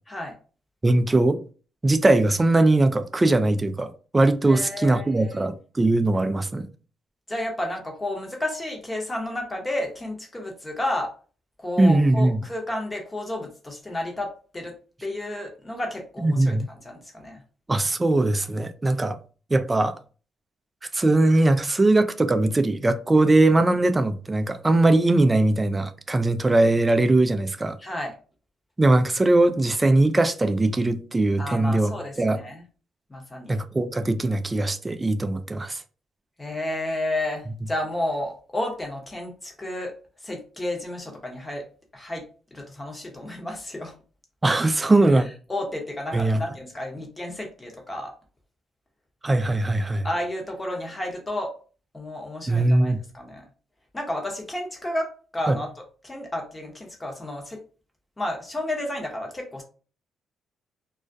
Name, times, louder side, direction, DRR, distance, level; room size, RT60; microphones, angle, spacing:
voice 1, 0.8-1.4 1.8-6.7 11.8-12.4 16.2-16.7 17.7-19.2 19.5-20.0 20.9-27.8 28.8-32.4 33.5-35.8 44.4-45.3 46.1-46.4 49.2-50.1 52.5-53.0 55.5-55.6, right 2 dB, 20° right, 0.3 m, -20 dB
voice 2, 4.5-5.4 7.3-11.1 11.6-14.7 15.0-17.4 27.8-28.1 31.4-32.6 33.1-33.6 36.4-39.9 40.2-41.6 41.9-42.2 42.5-43.9 45.5-48.1 50.0-51.5 51.9-53.5 53.9-55.7 56.0-57.6 58.2-59.6, left 1 dB, 20° left, 0.8 m, -31 dB
2.3 x 2.1 x 2.5 m
cardioid pair, 90°, 0 cm